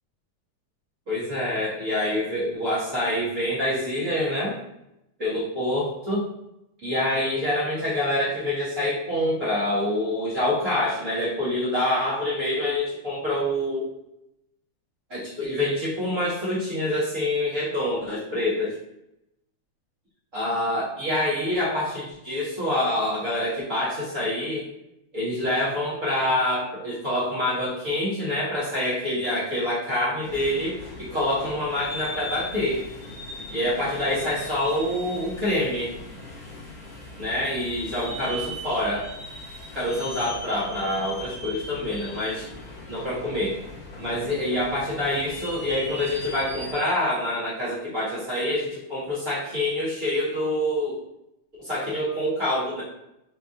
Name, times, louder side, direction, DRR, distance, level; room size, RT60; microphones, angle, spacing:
voice 1, 1.1-4.6 5.2-6.3 6.8-13.9 15.1-18.8 20.3-24.7 25.1-32.8 33.5-35.9 37.2-39.1 39.7-42.5 42.9-43.6 44.0-51.0 51.6-52.8, left 1 dB, 65° right, -10 dB, 0.7 m, -26 dB
sound 1, 30.2-46.7, left 1 dB, 60° left, 1.0 m, -39 dB
6.2 x 2.5 x 2.7 m, 0.84 s
omnidirectional pair, 3.6 m